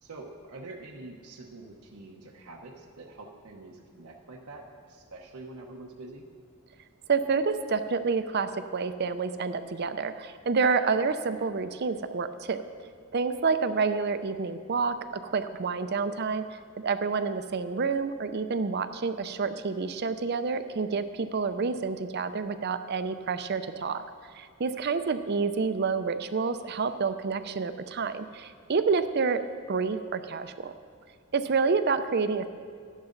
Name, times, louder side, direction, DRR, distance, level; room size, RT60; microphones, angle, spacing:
voice 1, 0.0-6.3 24.8-25.0 31.4-31.6, right 2 dB, 90° right, -1 dB, 1.0 m, -46 dB
voice 2, 7.1-12.6 13.1-15.0 15.3-24.0 24.3-29.4 29.7-30.7 31.3-32.5, right 4 dB, 45° right, 10 dB, 0.5 m, -28 dB
13.0 x 11.5 x 3.9 m, 2.1 s
head